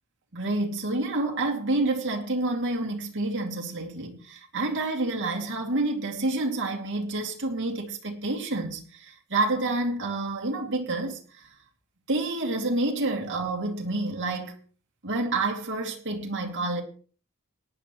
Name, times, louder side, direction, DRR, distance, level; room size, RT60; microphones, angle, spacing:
voice 1, 0.3-11.2 12.1-14.5 15.0-16.8, right 2 dB, 60° right, 2.6 m, -28 dB
18.5 x 11.0 x 3.1 m
head